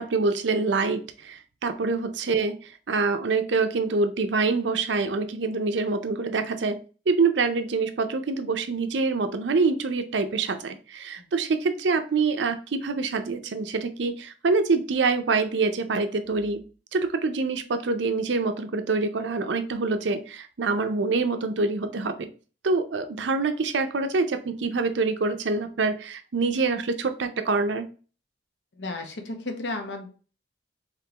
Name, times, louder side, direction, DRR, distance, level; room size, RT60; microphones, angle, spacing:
voice 1, 0.0-6.8 7.1-16.6 16.9-22.3 22.6-27.9, right 4 dB, 80° right, 9 dB, 0.5 m, -25 dB
voice 2, 28.7-30.1, left 2 dB, 75° left, 5 dB, 0.9 m, -33 dB
3.7 x 3.4 x 2.9 m, 0.36 s
head